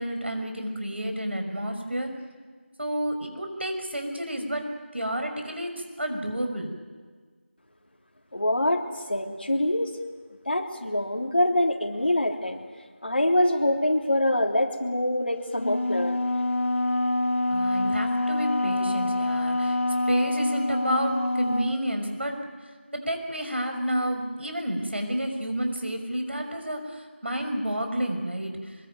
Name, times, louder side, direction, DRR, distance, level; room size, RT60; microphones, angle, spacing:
voice 1, 0.0-2.1 2.8-4.6 4.9-5.7 6.0-6.7 17.5-19.8 20.1-22.4 22.9-28.8, equal, 65° right, 4 dB, 6.0 m, -30 dB
voice 2, 8.3-8.8 9.1-9.9 10.4-12.6 13.0-16.2, left 1 dB, 50° left, 1 dB, 3.4 m, -24 dB
Wind instrument woodwind instrument, 15.6-21.8, left 1 dB, 85° left, 2.7 m, -26 dB
24.0 x 23.5 x 9.4 m, 1.5 s
figure-of-eight pair, 180°, 7 cm